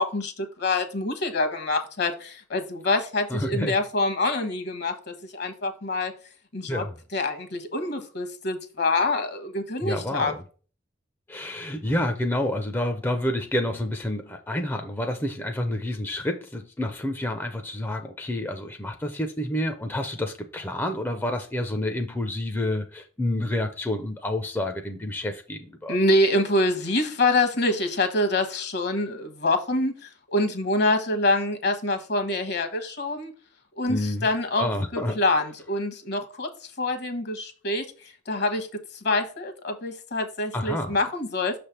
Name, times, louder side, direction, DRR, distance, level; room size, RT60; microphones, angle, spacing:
voice 1, 0.0-6.1 6.5-6.8 7.1-10.3 25.9-33.3 33.8-36.5 36.8-37.8 38.3-38.7 39.0-41.5, left 2 dB, 60° left, 1.2 m, -26 dB
voice 2, 3.3-3.8 6.7-7.0 9.8-10.4 11.3-26.0 33.9-34.3 34.6-35.2 40.5-41.0, left 1 dB, 10° left, 0.5 m, -29 dB
6.3 x 3.3 x 5.6 m
head